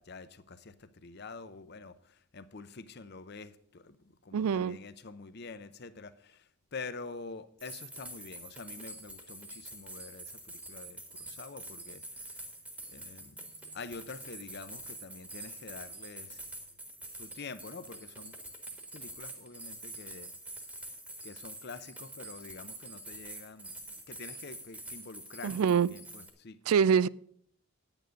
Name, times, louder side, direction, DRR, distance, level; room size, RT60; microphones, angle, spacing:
voice 1, 0.0-12.4 12.9-16.4 17.1-18.4 18.9-20.3 21.2-23.8 24.1-26.6, left 4 dB, 45° left, 0.6 m, -47 dB
voice 2, 4.3-4.8 25.4-25.9 26.7-27.1, right 7 dB, 75° right, 0.3 m, -25 dB
sound 1, 7.6-26.3, right 1 dB, 5° right, 1.2 m, -46 dB
9.4 x 9.1 x 5.1 m
head